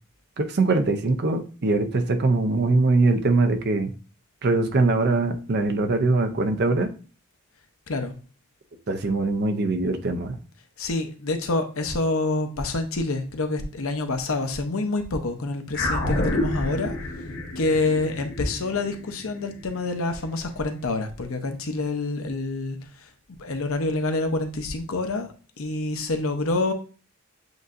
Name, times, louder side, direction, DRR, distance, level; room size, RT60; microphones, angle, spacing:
voice 1, 0.4-3.9 4.4-6.9 8.9-10.4, right 3 dB, 50° right, 0.5 m, -22 dB
voice 2, 10.8-17.0 17.6-25.3 25.6-26.7, left 2 dB, 70° left, 0.7 m, -27 dB
sound 1, 15.7-20.4, left 1 dB, 50° left, 1.0 m, -29 dB
7.8 x 2.7 x 2.5 m
head